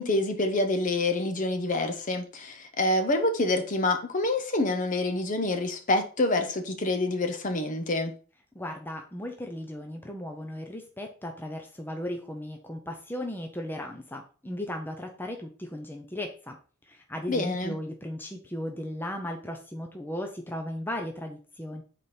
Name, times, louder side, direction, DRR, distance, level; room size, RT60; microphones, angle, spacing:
voice 1, 0.0-8.1 17.3-17.8, left 2 dB, 35° left, 0.8 m, -27 dB
voice 2, 8.5-16.6 16.9-21.8, left 1 dB, 10° left, 0.6 m, -36 dB
5.0 x 4.2 x 5.6 m
head